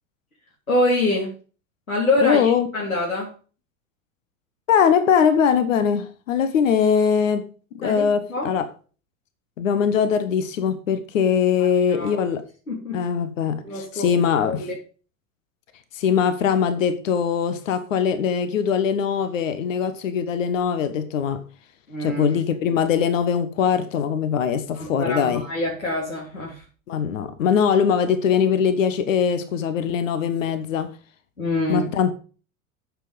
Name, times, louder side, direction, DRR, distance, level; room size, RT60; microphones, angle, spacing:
voice 1, 0.7-1.3 1.9-3.3 7.8-8.5 11.9-12.2 12.7-13.0 13.6-14.1 14.4-14.8 21.9-22.2 24.8-26.6 31.4-31.9, left 2 dB, 90° left, 3.6 m, -25 dB
voice 2, 2.2-2.7 4.7-7.4 7.8-8.7 9.6-12.4 12.9-14.6 15.9-21.4 22.0-25.4 26.9-30.9 31.7-32.1, left 7 dB, 70° left, 1.4 m, -21 dB
9.0 x 7.6 x 5.3 m
figure-of-eight pair, 80°, 40 cm